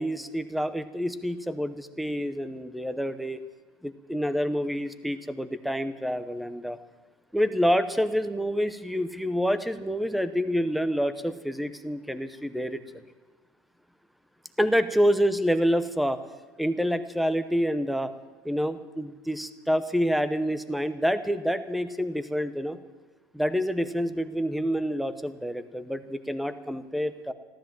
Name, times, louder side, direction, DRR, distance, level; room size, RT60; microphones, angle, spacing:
voice 1, 0.0-3.4 3.8-6.8 7.3-13.0 14.6-16.2 16.6-18.1 18.4-22.8 23.3-27.3, equal, ahead, 11 dB, 0.7 m, -27 dB
14.5 x 13.0 x 7.5 m, 1.3 s
cardioid pair, 155°, 7 cm